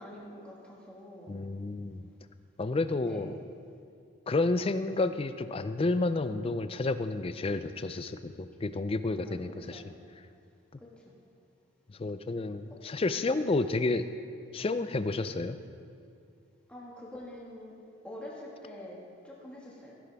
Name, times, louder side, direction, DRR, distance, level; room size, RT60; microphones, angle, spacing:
voice 1, 0.0-1.3 3.0-3.3 9.2-9.9 10.8-11.1 12.7-12.8 16.7-17.8 18.0-19.9, left 1 dB, 5° left, -4 dB, 1.8 m, -46 dB
voice 2, 1.3-2.1 2.6-3.4 4.3-9.8 12.0-14.1 14.5-15.6, left 3 dB, 25° left, 11 dB, 0.4 m, -30 dB
15.5 x 11.0 x 3.5 m, 2.4 s
head